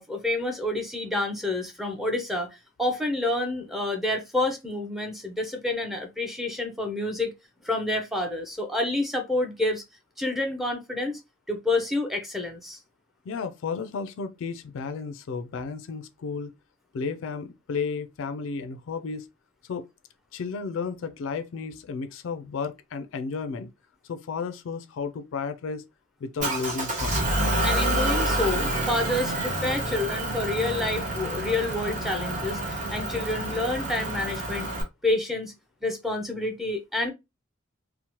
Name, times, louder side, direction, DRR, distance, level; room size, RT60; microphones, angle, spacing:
voice 1, 0.0-7.3 7.6-9.8 10.2-11.2 11.5-12.8 27.6-34.7 35.0-35.5 35.8-37.1, left 2 dB, ahead, 0.5 m, -28 dB
voice 2, 13.3-16.5 16.9-19.3 19.7-19.9 20.3-23.7 24.1-25.8 26.2-27.3, left 5 dB, 65° left, 0.3 m, -33 dB
Motor vehicle (road) / Engine, 26.4-34.8, right 1 dB, 35° right, 0.8 m, -28 dB
2.8 x 2.0 x 2.9 m
head